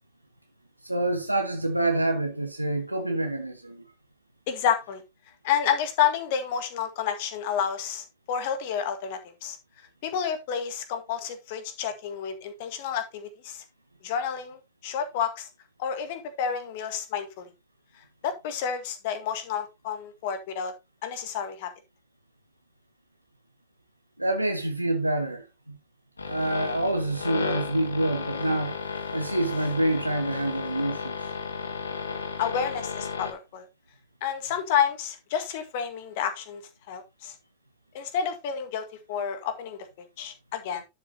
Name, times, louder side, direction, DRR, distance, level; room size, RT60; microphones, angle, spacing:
voice 1, 0.8-3.8 24.2-25.8 26.3-28.8 29.1-31.2, right 1 dB, 85° right, 1.0 m, -27 dB
voice 2, 4.5-5.0 5.4-9.6 10.0-13.6 14.0-15.5 15.8-17.5 18.2-20.7 21.0-21.7 32.4-33.7 34.2-36.6 36.9-37.3 37.9-40.8, left 8 dB, 50° left, 1.9 m, -30 dB
sound 1, 26.2-33.3, left 5 dB, 80° left, 1.6 m, -34 dB
11.5 x 7.2 x 2.9 m
figure-of-eight pair, 90°, 0 cm